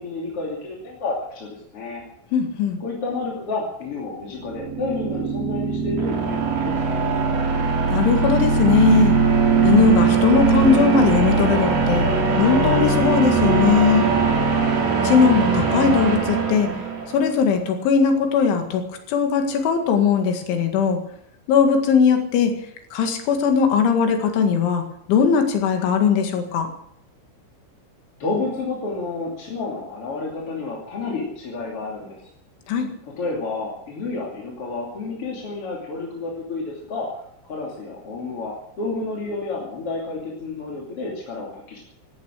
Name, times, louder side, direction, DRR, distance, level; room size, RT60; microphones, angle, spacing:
voice 1, 0.0-2.0 2.8-7.0 28.2-32.3 33.2-37.1 37.4-41.8, left 3 dB, 35° left, -2 dB, 3.0 m, -30 dB
voice 2, 2.3-2.8 7.9-9.2 9.6-14.1 15.0-16.7 17.1-21.0 21.5-22.5 22.9-24.8 25.1-26.7 32.7-32.9, left 6 dB, 75° left, 5 dB, 4.3 m, -19 dB
sound 1, 4.3-17.3, right 5 dB, 50° right, 4.3 m, -20 dB
16.0 x 13.5 x 6.6 m, 0.70 s
omnidirectional pair, 5.7 m